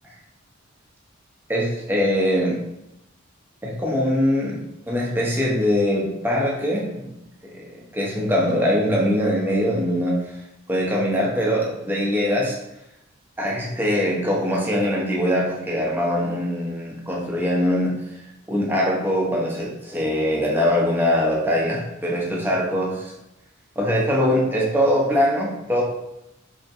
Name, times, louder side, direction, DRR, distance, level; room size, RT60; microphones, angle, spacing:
voice 1, 1.5-2.6 3.6-4.6 4.9-7.1 7.4-10.2 10.7-12.6 13.4-17.9 18.5-23.1 23.8-25.8, equal, 10° right, -3 dB, 0.8 m, -22 dB
5.2 x 2.9 x 2.6 m, 0.88 s
head